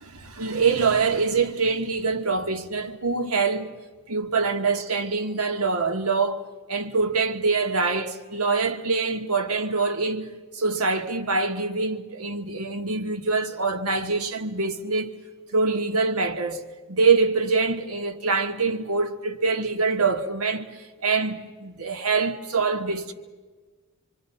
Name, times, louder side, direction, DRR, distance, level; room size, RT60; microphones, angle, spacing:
voice 1, 0.0-3.8 4.1-6.4 6.7-15.2 15.5-23.1, right 4 dB, 90° right, 1.6 m, -25 dB
26.5 x 24.0 x 5.7 m
head